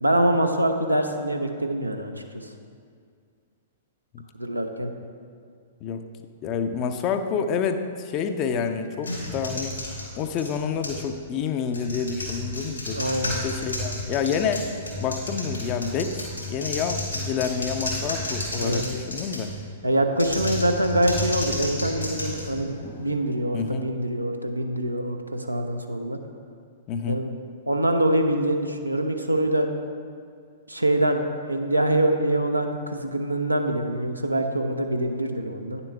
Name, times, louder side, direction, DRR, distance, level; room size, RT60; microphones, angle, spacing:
voice 1, 0.0-2.1 4.4-4.9 12.9-13.3 18.6-18.8 19.8-26.2 27.1-27.3 27.7-29.7 30.7-35.8, right 1 dB, 90° right, 4 dB, 0.6 m, -24 dB
voice 2, 6.4-9.8 10.2-13.0 13.4-19.5 23.5-23.9 26.9-27.2, left 6 dB, 30° left, 7 dB, 0.5 m, -28 dB
sound 1, 9.0-11.1 11.7-19.6 20.1-23.0, left 1 dB, 85° left, 2.3 m, -32 dB
9.6 x 6.9 x 3.4 m, 2.2 s
figure-of-eight pair, 110°, 0 cm